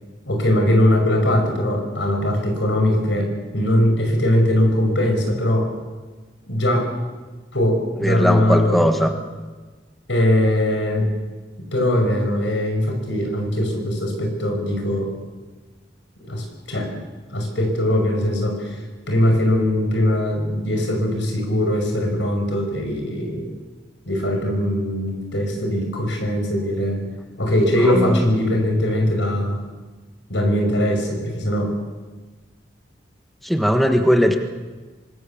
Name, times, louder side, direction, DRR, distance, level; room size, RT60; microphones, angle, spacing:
voice 1, 0.2-5.7 6.5-6.9 7.5-8.8 10.1-11.1 11.6-15.1 16.2-16.9 17.3-23.5 24.1-27.0 27.4-29.6 30.3-31.7, left 1 dB, 90° left, 3 dB, 5.8 m, -21 dB
voice 2, 8.0-9.1 28.0-28.1 33.4-34.4, equal, ahead, 5 dB, 1.4 m, -18 dB
25.0 x 20.5 x 7.3 m, 1.3 s
head